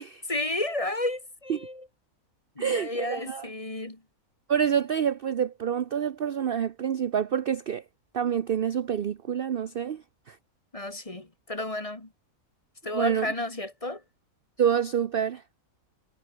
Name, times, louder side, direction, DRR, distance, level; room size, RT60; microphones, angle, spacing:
voice 1, 0.3-1.9 2.6-4.0 10.7-12.1 12.8-14.0, left 2 dB, 25° left, 2.1 m, -32 dB
voice 2, 2.6-3.4 4.5-7.8 8.1-10.0 10.3-10.4 12.9-13.3 14.6-15.4, right 8 dB, 50° right, 0.7 m, -27 dB
omnidirectional pair, 1.5 m